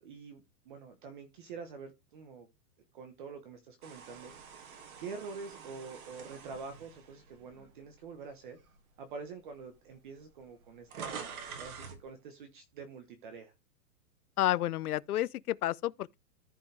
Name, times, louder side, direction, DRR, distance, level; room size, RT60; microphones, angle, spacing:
voice 1, 0.0-2.5 2.9-4.3 5.0-8.6 9.0-13.5, right 5 dB, 30° right, 1.1 m, -46 dB
sound 1, 3.8-8.1 8.6-8.8 9.7-9.8 10.0-12.0, right 6 dB, 60° right, 2.3 m, -47 dB
voice 2, 14.4-16.2, left 14 dB, 65° left, 0.6 m, -30 dB
14.0 x 5.4 x 3.4 m
hypercardioid pair, 175°, 49 cm